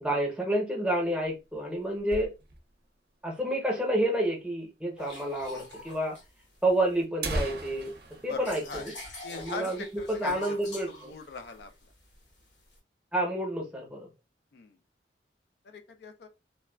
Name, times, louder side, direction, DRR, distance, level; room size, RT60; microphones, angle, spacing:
voice 1, 0.0-2.3 3.2-6.2 6.6-7.9 8.2-8.9 9.4-11.1 13.1-14.1, right 1 dB, 5° right, 0.7 m, -29 dB
sound 1, 1.0-2.8 3.2-3.3 3.5-3.6 4.3-4.4 5.3-5.4 5.7-5.8 6.6-6.7 7.0-9.6 9.9-10.1 10.5-10.7 11.1-11.7, right 2 dB, 60° right, 0.5 m, -38 dB
sound 2, 5.0-7.0 7.5-12.8, left 2 dB, 85° left, 1.0 m, -46 dB
voice 2, 8.3-8.9 9.2-10.6 10.9-11.7 14.5-14.8 15.6-16.3, left 4 dB, 65° left, 0.4 m, -40 dB
3.1 x 2.2 x 2.2 m
head